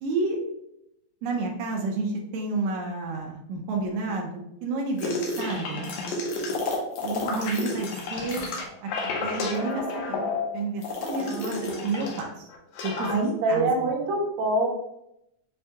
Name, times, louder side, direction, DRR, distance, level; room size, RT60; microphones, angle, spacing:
voice 1, 0.0-0.4 1.2-5.9 7.0-8.4 8.8-8.9 9.2-10.3 10.5-12.5 12.8-13.7, right 3 dB, 85° right, 0 dB, 1.6 m, -30 dB
sound 1, 5.0-12.3 12.5-13.2, left 3 dB, 75° left, 1.9 m, -31 dB
voice 2, 11.1-11.9 13.0-14.7, right 2 dB, 70° right, -2 dB, 2.1 m, -27 dB
6.4 x 2.2 x 2.8 m, 0.82 s
omnidirectional pair, 3.9 m